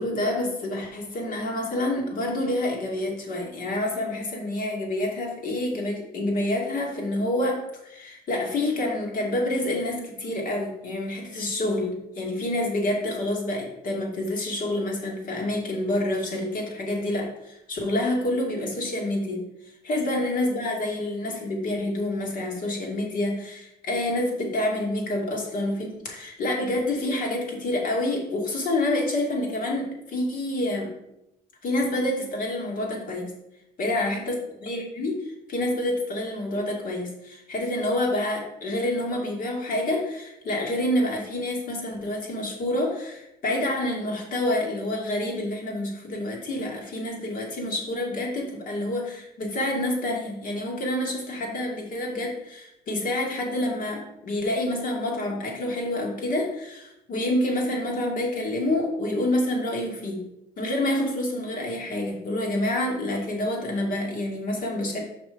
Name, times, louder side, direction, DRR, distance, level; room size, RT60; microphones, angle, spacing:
voice 1, 0.0-19.4 19.8-30.9 31.6-33.3 33.8-34.3 34.6-60.2 60.6-65.0, left 1 dB, 55° left, 0 dB, 2.3 m, -28 dB
5.9 x 5.7 x 5.1 m, 0.84 s
cardioid pair, 110°, 17 cm